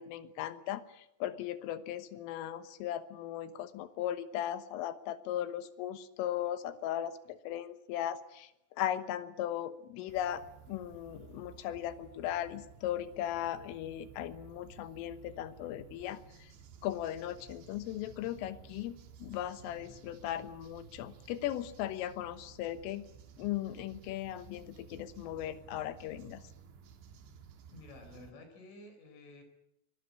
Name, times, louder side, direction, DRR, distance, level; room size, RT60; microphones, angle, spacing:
voice 1, 0.0-8.5 8.8-10.4 10.7-16.5 16.8-23.0 23.4-26.4, left 12 dB, 90° left, 12 dB, 3.8 m, -37 dB
sound 1, 10.1-28.3, right 6 dB, 70° right, 4.0 m, -55 dB
voice 2, 27.7-29.4, left 2 dB, 75° left, 8 dB, 6.4 m, -52 dB
23.5 x 20.5 x 8.5 m, 0.80 s
omnidirectional pair, 5.7 m